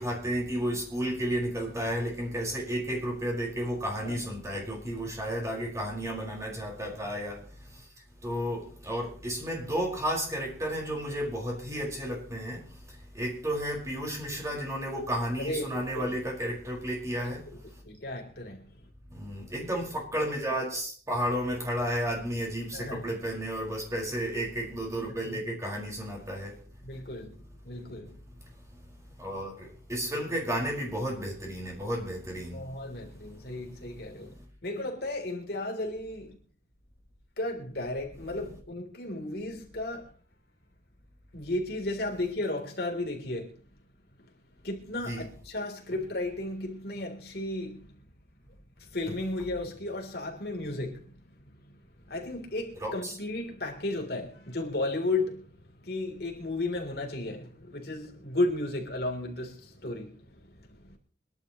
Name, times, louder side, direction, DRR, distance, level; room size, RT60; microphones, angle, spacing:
voice 1, 0.0-7.9 8.2-17.8 19.1-26.6 27.8-27.9 28.3-28.8 29.1-32.7 33.2-34.0 34.2-34.3 45.1-45.3 52.8-53.2, equal, 15° right, 5.3 m, -33 dB
voice 2, 15.4-16.1 17.8-18.7 22.7-23.0 26.8-28.2 32.5-36.4 37.4-40.1 41.3-43.6 44.6-47.9 48.8-51.1 51.7-51.8 52.1-55.4 55.8-61.0, left 2 dB, 60° left, 3.5 m, -34 dB
25.5 x 11.5 x 3.1 m
head